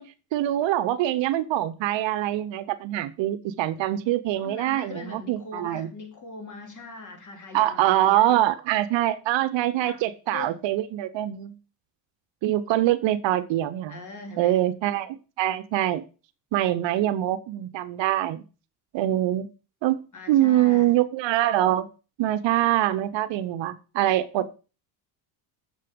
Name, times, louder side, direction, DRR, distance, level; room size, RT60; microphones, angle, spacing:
voice 1, 0.0-5.9 7.5-11.6 12.4-14.0 14.4-16.0 16.5-18.4 18.9-19.5 19.8-21.9 22.2-24.6, right 13 dB, 60° right, 0.8 m, -24 dB
voice 2, 4.4-8.3 9.8-10.0 10.3-10.5 13.9-14.6 20.1-20.9, left 3 dB, 35° left, 3.2 m, -41 dB
7.5 x 6.9 x 5.1 m
supercardioid pair, 85°, 50 cm